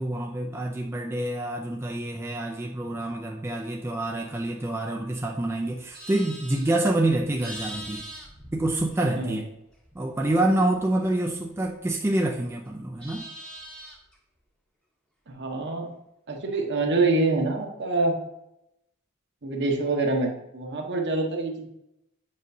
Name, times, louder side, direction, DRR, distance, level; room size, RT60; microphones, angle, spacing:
voice 1, 0.0-8.0 8.5-9.5 9.9-13.2, right 1 dB, 10° right, 0 dB, 0.4 m, -27 dB
Livestock farm animals working animals, 5.8-9.4 9.7-12.2 12.6-14.1, equal, 5° left, 0.9 m, -43 dB
voice 2, 15.3-16.0 16.3-18.1 19.4-21.7, right 2 dB, 55° right, 2 dB, 0.9 m, -26 dB
7.4 x 5.1 x 2.7 m, 0.85 s
head